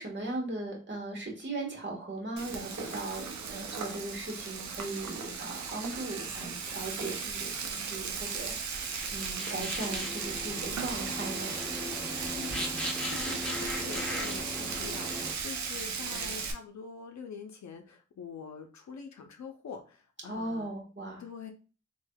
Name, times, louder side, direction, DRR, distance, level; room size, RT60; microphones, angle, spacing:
voice 1, 0.0-11.9 20.2-21.2, right 2 dB, 40° right, 0 dB, 1.4 m, -38 dB
Frying (food), 2.4-16.5, right 5 dB, 70° right, 0.6 m, -36 dB
sound 1, 8.7-15.3, equal, 5° left, 1.1 m, -38 dB
voice 2, 12.3-20.7 21.2-21.5, left 6 dB, 70° left, 4 dB, 0.6 m, -45 dB
3.3 x 2.3 x 2.2 m, 0.35 s
supercardioid pair, 40°, 30 cm